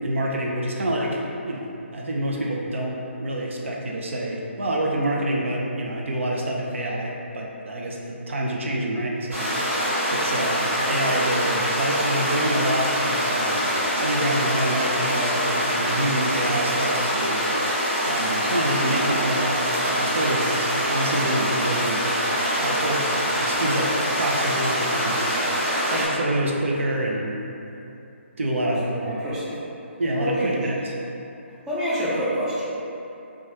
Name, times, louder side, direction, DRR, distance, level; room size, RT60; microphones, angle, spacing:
voice 1, 0.0-1.6 1.9-9.7 10.1-13.7 14.0-17.4 18.1-22.0 22.6-23.9 24.2-27.3 28.4-29.1 30.0-30.9, right 1 dB, 70° right, -2 dB, 0.5 m, -27 dB
sound 1, 9.3-26.1, equal, 90° right, 0.9 m, -24 dB
voice 2, 28.9-29.6 30.2-30.6 31.7-32.6, equal, 10° right, -10 dB, 0.4 m, -27 dB
3.0 x 2.2 x 2.7 m, 2.8 s
figure-of-eight pair, 150°, 7 cm